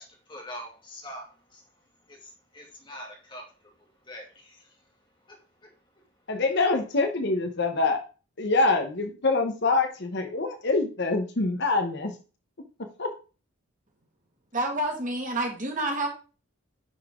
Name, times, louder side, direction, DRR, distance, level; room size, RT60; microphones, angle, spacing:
voice 1, 0.0-1.6 2.1-4.8 5.3-5.7, equal, 20° left, 2.2 m, -44 dB
voice 2, 6.3-8.0 8.4-12.1 13.0-13.1, left 3 dB, 50° left, 1.0 m, -25 dB
voice 3, 14.5-16.1, right 2 dB, 35° right, 2.1 m, -28 dB
9.8 x 5.7 x 3.7 m
head